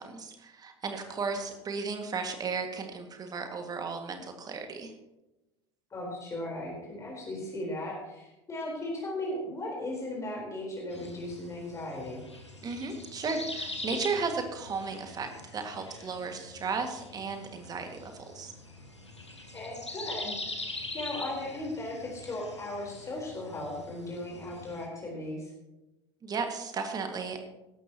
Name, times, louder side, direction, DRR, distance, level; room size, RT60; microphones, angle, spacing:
voice 1, 0.0-4.9 12.6-18.5 26.2-27.4, right 4 dB, 25° right, 5 dB, 2.1 m, -35 dB
voice 2, 5.9-12.2 19.5-25.5, left 1 dB, 20° left, -2 dB, 4.2 m, -37 dB
sound 1, 10.9-24.8, left 2 dB, 85° left, 1.8 m, -43 dB
17.0 x 13.0 x 3.0 m, 0.99 s
figure-of-eight pair, 75°, 14 cm